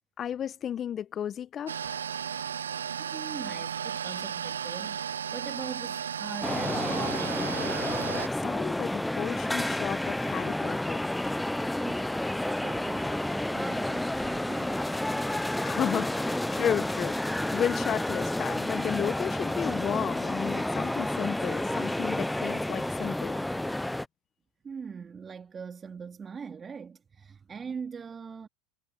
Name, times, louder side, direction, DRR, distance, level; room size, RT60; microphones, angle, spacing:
voice 1, 0.2-2.0 8.3-11.0 15.6-23.4, left 9 dB, 35° left, 1.3 m, -33 dB
sound 1, 1.7-8.3, right 8 dB, 85° right, 0.7 m, -34 dB
voice 2, 3.0-5.0 5.3-7.3 11.6-14.8 24.6-28.5, right 6 dB, 25° right, 2.8 m, -42 dB
sound 2, 6.4-24.1, left 1 dB, 5° left, 0.8 m, -30 dB
hypercardioid pair, 90°, 0 cm